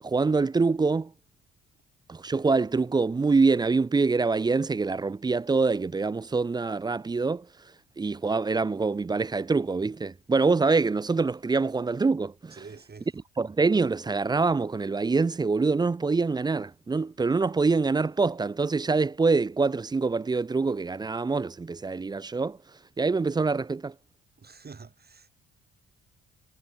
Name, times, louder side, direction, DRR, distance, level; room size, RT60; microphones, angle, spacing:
voice 1, 0.0-1.1 2.1-7.5 8.0-12.6 13.4-22.6 23.0-23.9, right 4 dB, 15° right, 0.3 m, -25 dB
voice 2, 12.6-13.1 24.4-25.3, right 5 dB, 30° right, 4.5 m, -46 dB
cardioid pair, 90°, 30 cm